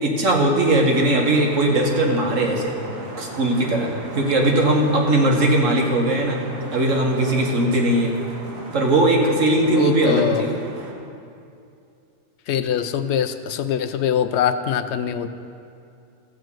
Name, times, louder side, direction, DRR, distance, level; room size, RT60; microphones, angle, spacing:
voice 1, 0.0-2.8 3.2-6.4 6.7-8.1 8.7-10.5, right 1 dB, 70° right, 0 dB, 1.7 m, -19 dB
sound 1, 0.9-10.9, right 1 dB, 85° right, 1.8 m, -37 dB
voice 2, 9.7-10.4 12.5-15.3, left 9 dB, 65° left, 11 dB, 0.8 m, -23 dB
14.5 x 5.0 x 7.5 m, 2.5 s
omnidirectional pair, 1.4 m